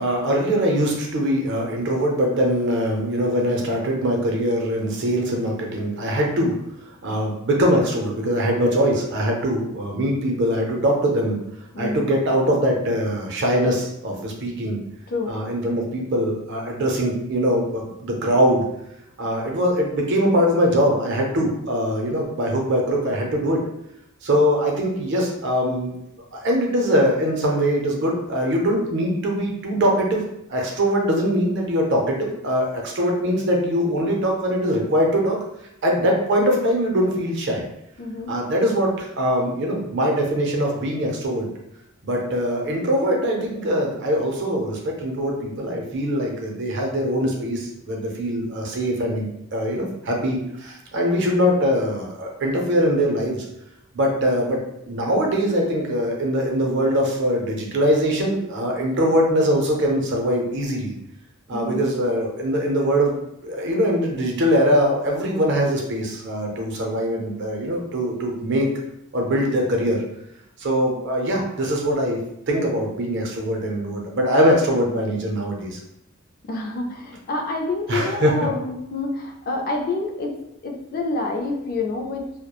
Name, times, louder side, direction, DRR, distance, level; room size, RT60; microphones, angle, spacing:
voice 1, 0.0-6.6 7.0-11.4 11.8-14.8 15.3-18.6 19.2-23.6 24.2-25.9 26.3-30.2 30.5-35.4 35.8-37.6 38.3-41.5 42.0-53.4 53.9-54.6 54.9-60.9 61.5-63.2 63.4-68.7 69.1-70.0 70.6-72.2 72.5-75.8 77.9-78.5, equal, 55° right, 0 dB, 0.5 m, -22 dB
voice 2, 11.7-12.1 15.1-15.4 38.0-38.3 61.5-61.9 76.5-80.3 80.6-82.3, left 3 dB, 45° left, 2 dB, 0.3 m, -27 dB
2.2 x 2.1 x 2.9 m, 0.80 s
head